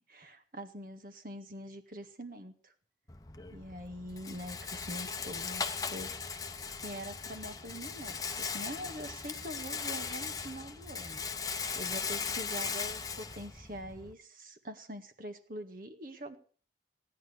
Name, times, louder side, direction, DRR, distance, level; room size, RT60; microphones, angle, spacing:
voice 1, 0.1-2.7 3.5-6.2 6.8-11.2 11.8-16.4, equal, 50° right, 8 dB, 1.9 m, -44 dB
Rattle, 3.1-14.1, left 5 dB, 20° left, 0.9 m, -38 dB
17.0 x 10.5 x 6.6 m, 0.41 s
head